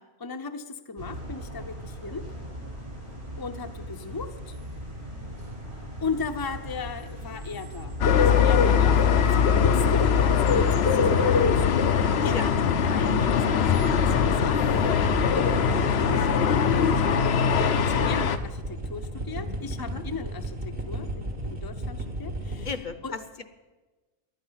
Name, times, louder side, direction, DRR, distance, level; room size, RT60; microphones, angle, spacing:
voice 1, 0.2-2.2 3.4-4.6 6.0-10.9 11.2-17.0 17.8-22.7 23.0-23.2, left 4 dB, 25° left, 6 dB, 0.7 m, -37 dB
sound 1, 1.0-16.4, equal, 75° right, 6.0 m, -39 dB
sound 2, 8.0-18.4, left 7 dB, 70° left, 1.0 m, -21 dB
voice 2, 12.2-12.5 14.9-15.2 19.8-20.0 22.6-23.4, left 5 dB, 45° left, 11 dB, 0.9 m, -35 dB
sound 3, 12.6-22.7, right 1 dB, 55° right, 2.0 m, -35 dB
18.5 x 11.5 x 5.7 m, 1.2 s
omnidirectional pair, 1.1 m